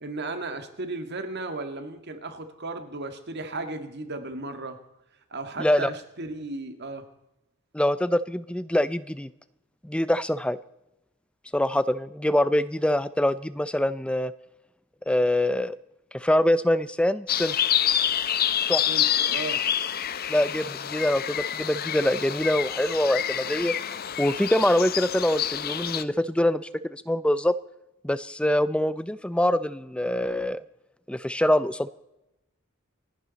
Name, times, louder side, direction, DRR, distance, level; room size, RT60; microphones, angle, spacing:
voice 1, 0.0-4.8 5.3-7.1 18.9-19.6, right 2 dB, 55° right, 8 dB, 1.8 m, -35 dB
voice 2, 5.6-5.9 7.7-9.3 9.8-10.6 11.5-14.3 15.1-15.8 16.1-17.5 18.7-18.8 20.3-23.7 24.2-27.5 28.0-30.6 31.1-31.9, left 1 dB, 5° left, 15 dB, 0.5 m, -24 dB
sound 1, 17.3-26.0, left 10 dB, 45° left, 0.6 m, -27 dB
28.0 x 11.0 x 4.1 m, 0.91 s
head